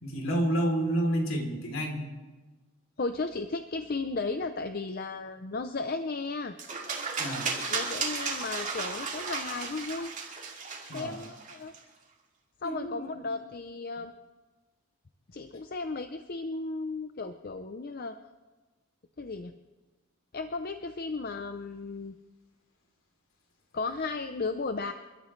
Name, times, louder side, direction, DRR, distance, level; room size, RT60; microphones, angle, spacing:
voice 1, 0.0-2.0 7.2-7.5 10.9-11.2 12.6-13.3, right 1 dB, 65° left, 1 dB, 3.3 m, -29 dB
voice 2, 3.0-6.5 7.7-10.1 10.9-11.7 12.6-14.1 15.3-18.2 19.2-19.5 20.3-22.1 23.7-24.9, left 3 dB, 45° left, 8 dB, 0.6 m, -35 dB
sound 1, 6.6-11.8, right 4 dB, 35° right, 2.6 m, -34 dB
29.5 x 13.0 x 3.2 m, 1.3 s
head